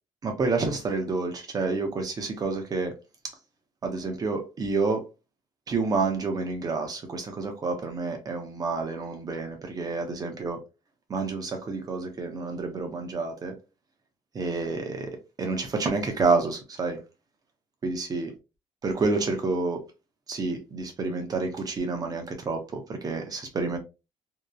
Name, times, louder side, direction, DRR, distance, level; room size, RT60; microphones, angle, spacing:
voice 1, 0.2-3.0 3.2-3.4 3.8-5.1 5.7-10.6 11.1-13.6 14.3-17.0 17.8-18.3 18.8-19.8 20.3-23.8, right 3 dB, 30° right, 0.7 m, -29 dB
2.8 x 2.1 x 2.3 m
cardioid pair, 140°, 12 cm